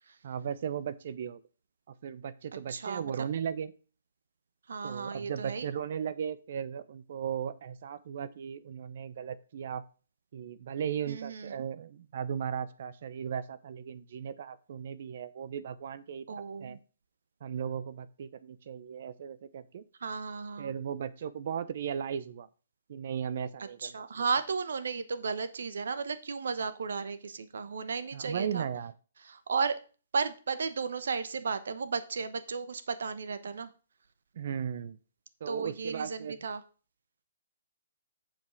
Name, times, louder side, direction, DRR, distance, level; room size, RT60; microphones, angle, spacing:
voice 1, 0.2-1.4 2.0-3.7 4.8-9.8 10.3-16.8 17.4-19.8 20.6-22.5 22.9-24.3 28.1-28.9 34.3-35.0 35.4-36.3, right 8 dB, 55° right, 14 dB, 0.8 m, -36 dB
voice 2, 2.7-3.0 4.7-5.7 11.1-11.5 16.3-16.8 20.0-20.7 23.8-28.7 29.2-29.8 30.1-33.7 35.5-36.6, right 5 dB, 75° right, 11 dB, 1.1 m, -34 dB
7.3 x 5.6 x 6.0 m, 0.36 s
hypercardioid pair, 140°, 0 cm